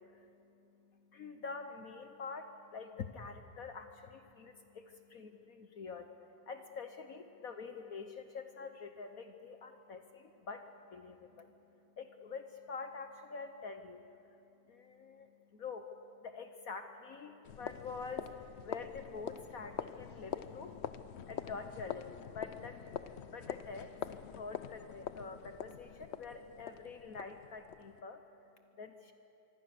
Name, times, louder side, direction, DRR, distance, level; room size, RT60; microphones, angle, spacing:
voice 1, 0.0-29.1, left 4 dB, 55° left, 7 dB, 1.3 m, -47 dB
sound 1, 17.4-28.0, left 8 dB, 75° left, 0.6 m, -45 dB
25.0 x 25.0 x 6.7 m, 2.8 s
omnidirectional pair, 2.0 m